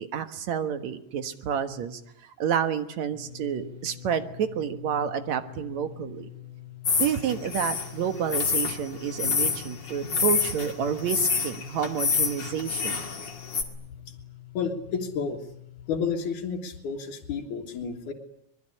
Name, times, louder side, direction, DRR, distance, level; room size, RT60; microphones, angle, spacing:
voice 1, 0.0-6.3 7.0-13.1, right 8 dB, 70° right, 9 dB, 2.7 m, -29 dB
sound 1, 3.1-15.9, left 14 dB, 90° right, 8.6 m, -46 dB
sound 2, 6.8-13.6, left 5 dB, 40° left, 2.9 m, -28 dB
voice 2, 14.5-15.4 15.9-18.1, left 6 dB, 85° left, -1 dB, 3.4 m, -31 dB
24.0 x 21.5 x 9.9 m, 0.77 s
omnidirectional pair, 3.4 m